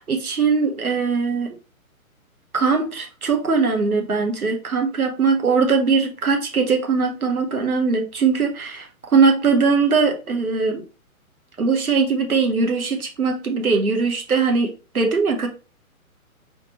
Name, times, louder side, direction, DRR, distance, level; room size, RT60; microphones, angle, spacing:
voice 1, 0.0-1.5 2.5-8.9 9.1-10.8 11.6-14.7 14.9-15.5, right 4 dB, 80° right, 3 dB, 1.2 m, -20 dB
4.2 x 2.8 x 3.1 m, 0.33 s
figure-of-eight pair, 125°, 43 cm